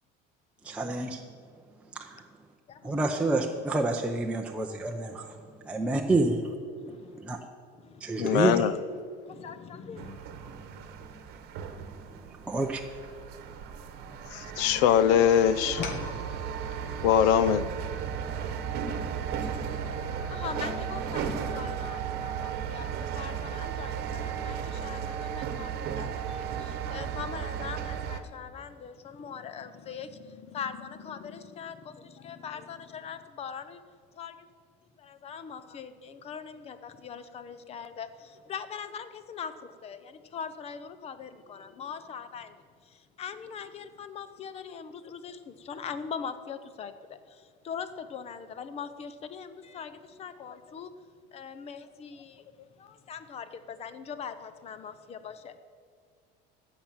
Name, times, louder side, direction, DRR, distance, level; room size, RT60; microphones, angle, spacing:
voice 1, 0.6-1.2 1.9-2.2 2.8-5.4 5.7-6.4 7.2-7.4 8.0-8.7 12.5-12.8, right 2 dB, 5° right, 1 dB, 0.6 m, -28 dB
voice 2, 6.7-7.2 7.8-8.0 9.3-10.2 13.8-13.9 16.0-16.2 16.8-17.0 19.3-19.8 20.1-33.8 34.2-34.3 35.0-50.9 51.3-55.6, left 7 dB, 30° left, 12 dB, 0.7 m, -41 dB
voice 3, 8.2-8.7 14.3-15.8 17.0-17.7, left 9 dB, 85° left, 15 dB, 0.7 m, -22 dB
sound 1, 8.2-14.6 14.9-16.2, left 5 dB, 55° left, 1.8 m, -43 dB
sound 2, 10.0-28.2, right 7 dB, 50° right, 1.2 m, -35 dB
15.0 x 6.0 x 8.8 m, 2.2 s
cardioid pair, 155°, 20 cm